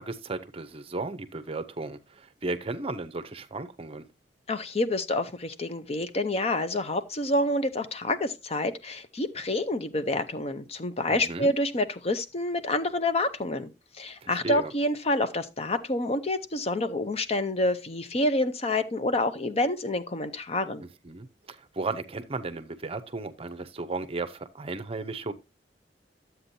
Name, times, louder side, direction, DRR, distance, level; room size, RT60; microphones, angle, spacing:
voice 1, 0.0-4.1 11.1-11.5 14.2-14.7 20.8-25.3, right 3 dB, 35° right, 0.7 m, -35 dB
voice 2, 4.5-13.7 14.0-20.8, left 1 dB, 35° left, 0.7 m, -28 dB
11.5 x 8.0 x 2.7 m
head